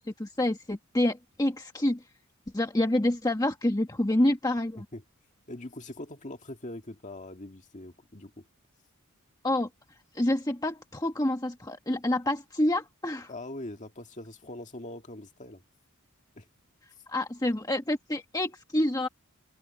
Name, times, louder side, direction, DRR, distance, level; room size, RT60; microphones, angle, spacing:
voice 1, 0.0-2.0 2.5-4.8 9.4-9.7 10.1-13.3 17.1-19.1, left 1 dB, 15° left, 1.3 m, -27 dB
voice 2, 5.5-8.5 13.3-15.6 16.4-16.5, left 1 dB, 35° left, 2.0 m, -42 dB
head